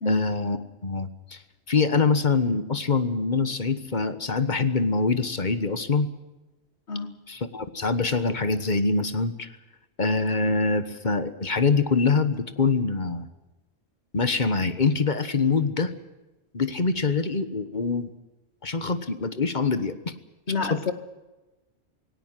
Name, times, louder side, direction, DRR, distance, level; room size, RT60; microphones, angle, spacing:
voice 1, 0.0-1.4 1.7-6.1 7.3-9.5 10.0-13.3 14.1-15.9 16.5-18.1 18.6-20.0 20.7-20.8, left 4 dB, 45° left, 11 dB, 1.4 m, -24 dB
voice 2, 20.5-20.9, left 4 dB, 75° left, 9 dB, 1.9 m, -28 dB
18.5 x 17.5 x 9.6 m, 1.1 s
omnidirectional pair, 1.2 m